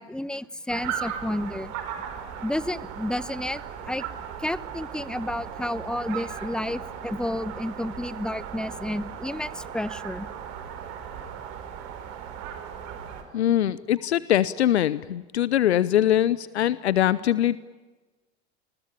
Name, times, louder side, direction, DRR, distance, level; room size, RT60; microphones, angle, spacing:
voice 1, 0.0-1.7 2.4-3.6 3.9-4.0 4.4-10.3, left 1 dB, ahead, 18 dB, 1.0 m, -31 dB
sound 1, 0.7-13.2, right 8 dB, 55° right, 5.2 m, -37 dB
voice 2, 13.3-17.6, left 11 dB, 80° left, 18 dB, 0.9 m, -22 dB
29.0 x 20.5 x 9.9 m, 1.2 s
hypercardioid pair, 80°, 33 cm